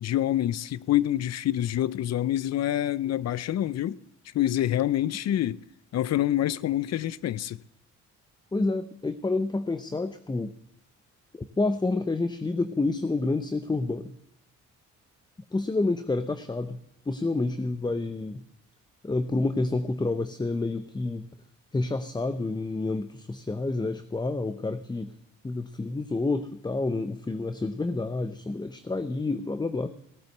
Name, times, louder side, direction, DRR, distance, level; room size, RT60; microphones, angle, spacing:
voice 1, 0.0-4.0 4.3-5.6 5.9-7.6, left 12 dB, 60° left, 0.6 m, -26 dB
voice 2, 8.5-10.5 11.3-14.1 15.5-18.4 19.0-21.3 21.7-25.1 25.4-29.9, left 3 dB, 15° left, 0.7 m, -29 dB
18.0 x 8.9 x 6.6 m
cardioid pair, 90°, 30 cm